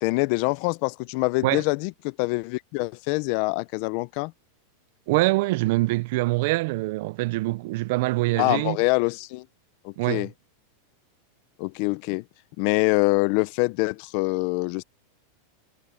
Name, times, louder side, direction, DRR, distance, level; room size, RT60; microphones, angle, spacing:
voice 1, 0.0-4.3 8.4-9.5 9.8-10.3 11.6-12.2 12.6-14.8, left 25 dB, 50° left, 0.6 m, -25 dB
voice 2, 5.1-8.8 10.0-10.3, right 21 dB, 55° right, 0.5 m, -24 dB
supercardioid pair, 155°, 0 cm